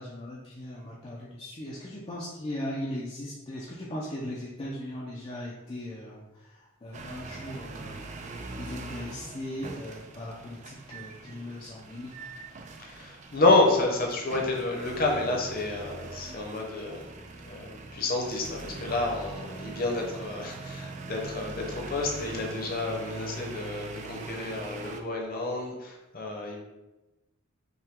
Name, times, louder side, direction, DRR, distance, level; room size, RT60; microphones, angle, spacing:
voice 1, 0.0-8.2 8.5-12.1, left 1 dB, 25° left, -5 dB, 0.5 m, -38 dB
sound 1, 6.9-25.0, right 3 dB, 35° right, 0.4 m, -42 dB
voice 2, 12.8-17.1 17.4-26.6, left 2 dB, 45° left, 0 dB, 0.8 m, -29 dB
5.6 x 2.2 x 3.6 m, 1.0 s
head